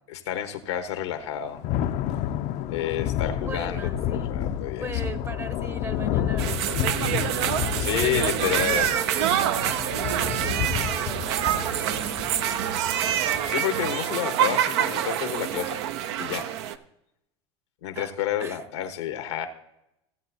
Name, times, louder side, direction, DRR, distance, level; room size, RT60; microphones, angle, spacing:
voice 1, 0.1-1.6 2.7-4.9 7.8-8.9 13.2-15.8 16.2-16.6 17.8-19.5, left 11 dB, 85° left, 1.2 m, -30 dB
Thunder / Rain, 1.1-13.5, left 10 dB, 55° left, 0.6 m, -30 dB
voice 2, 3.4-4.4 4.8-13.0 17.9-18.1 18.4-18.6, right 2 dB, 20° right, 0.8 m, -39 dB
sound 1, 6.4-16.7, right 10 dB, 75° right, 0.6 m, -26 dB
16.5 x 7.8 x 2.7 m
hypercardioid pair, 90°, 14 cm